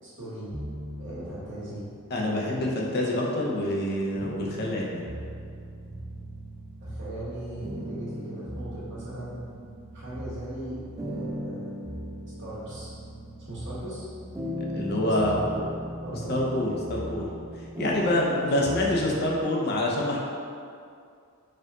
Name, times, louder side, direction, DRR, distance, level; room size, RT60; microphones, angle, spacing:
voice 1, 0.0-0.5 1.0-1.8 2.5-2.9 6.8-9.4 9.9-11.7 12.4-12.9 13.4-14.1 14.9-15.7 16.0-16.4 18.6-19.1, right 1 dB, 55° right, -10 dB, 1.5 m, -38 dB
sound 1, 0.5-2.2 2.9-19.4, equal, 15° right, 0.3 m, -38 dB
voice 2, 2.1-5.0 14.7-15.3 16.3-17.3 17.8-20.2, left 1 dB, 50° left, -2 dB, 0.6 m, -26 dB
4.3 x 2.5 x 3.7 m, 2.3 s
head